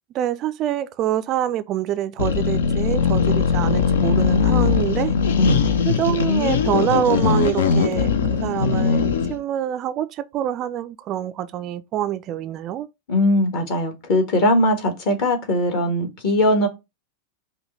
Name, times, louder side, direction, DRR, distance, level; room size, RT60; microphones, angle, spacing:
voice 1, 0.1-5.1 5.9-8.1 8.4-9.0 9.3-12.9, right 11 dB, 35° right, 0.3 m, -25 dB
sound 1, 2.2-9.4, left 6 dB, 60° left, 0.5 m, -20 dB
voice 2, 5.4-5.8 13.1-16.7, left 1 dB, 45° left, 1.5 m, -20 dB
5.3 x 2.2 x 4.0 m
figure-of-eight pair, 90°, 0 cm